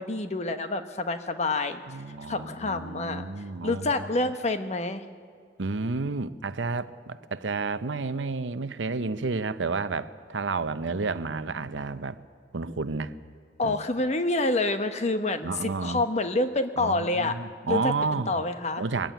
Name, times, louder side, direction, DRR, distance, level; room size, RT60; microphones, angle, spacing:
voice 1, 0.0-1.8 2.3-3.2 3.6-5.0 13.6-17.4 17.7-17.9 18.3-18.8, left 2 dB, 40° left, 1.0 m, -27 dB
voice 2, 1.9-4.3 5.6-12.2 12.5-13.1 13.6-13.8 15.4-16.0 16.8-18.4 18.8-19.1, right 4 dB, 85° right, 0.8 m, -31 dB
21.0 x 15.0 x 9.3 m
head